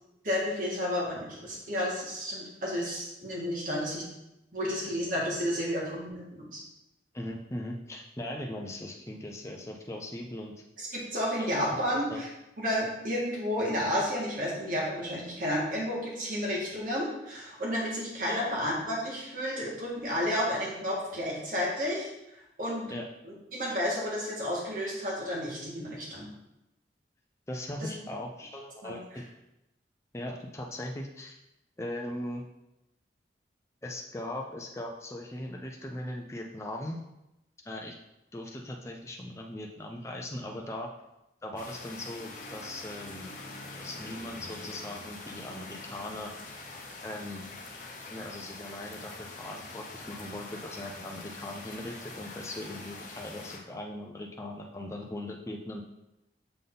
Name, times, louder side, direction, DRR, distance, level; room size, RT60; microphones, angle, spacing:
voice 1, 0.2-4.0 4.5-6.6 10.8-12.3 12.6-22.9 23.2-26.3 27.8-27.9 28.8-29.0, equal, 50° right, -4 dB, 1.8 m, -31 dB
voice 2, 7.1-10.5 11.4-11.8 12.1-12.2 18.3-18.4 22.9-23.1 27.5-29.3 30.1-31.4 31.8-32.4 33.8-37.0 37.7-38.0 38.3-40.9 41.4-43.3 43.8-46.3 47.0-47.4 48.1-55.8, left 1 dB, 15° left, 0 dB, 0.5 m, -39 dB
sound 1, 41.6-53.6, left 3 dB, 45° left, 0.9 m, -44 dB
6.8 x 3.7 x 3.9 m, 0.90 s
head